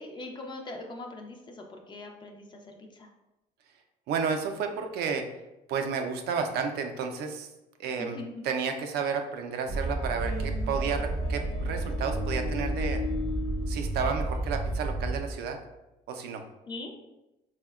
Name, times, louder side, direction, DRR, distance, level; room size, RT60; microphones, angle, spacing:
voice 1, 0.0-3.1 8.0-8.4 16.7-16.9, left 2 dB, 25° left, 3 dB, 0.4 m, -41 dB
voice 2, 4.1-5.2 5.7-7.5 7.8-8.2 8.4-13.0 13.7-15.6 16.1-16.4, right 5 dB, 75° right, 5 dB, 0.4 m, -31 dB
sound 1, 9.7-14.9, left 6 dB, 85° left, 0.7 m, -40 dB
sound 2, 9.7-15.5, right 2 dB, 20° right, 0.5 m, -31 dB
3.5 x 2.1 x 2.3 m, 0.96 s
cardioid pair, 110°, 17 cm